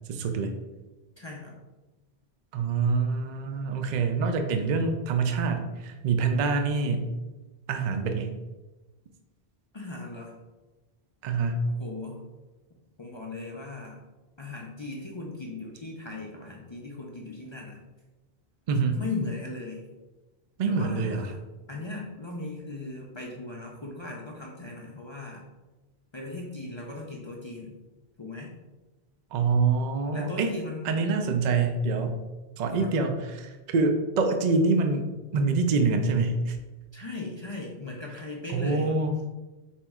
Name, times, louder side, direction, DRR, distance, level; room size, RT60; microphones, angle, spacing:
voice 1, 0.1-0.5 2.5-7.1 7.7-8.3 11.2-11.7 18.7-19.0 20.6-21.3 29.3-30.5 30.8-32.2 32.6-36.6 38.5-39.1, right 4 dB, 55° right, 6 dB, 0.5 m, -26 dB
voice 2, 1.2-1.6 9.7-10.4 11.7-12.2 13.0-14.0 14.4-17.8 18.9-19.9 20.7-21.4 21.7-25.4 26.1-27.8 28.2-28.5 30.1-30.9 32.8-32.9 36.9-38.9, left 2 dB, 40° left, -2 dB, 0.4 m, -38 dB
4.3 x 3.0 x 3.5 m, 1.1 s
omnidirectional pair, 1.0 m